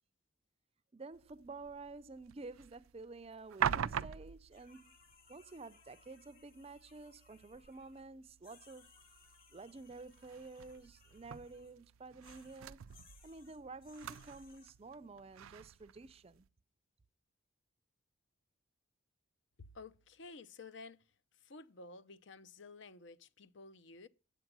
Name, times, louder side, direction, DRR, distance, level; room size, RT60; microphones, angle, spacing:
voice 1, 0.9-4.9 5.3-8.9 9.5-12.8 13.2-16.4, right 3 dB, 30° right, 0.4 m, -51 dB
sound 1, 1.1-16.5, right 8 dB, 90° right, 0.4 m, -45 dB
sound 2, 4.5-8.0 8.4-11.7 12.2-14.7, left 5 dB, 45° left, 3.5 m, -65 dB
voice 2, 19.7-21.0 21.4-24.1, left 3 dB, 65° left, 0.7 m, -53 dB
9.2 x 7.9 x 6.0 m
head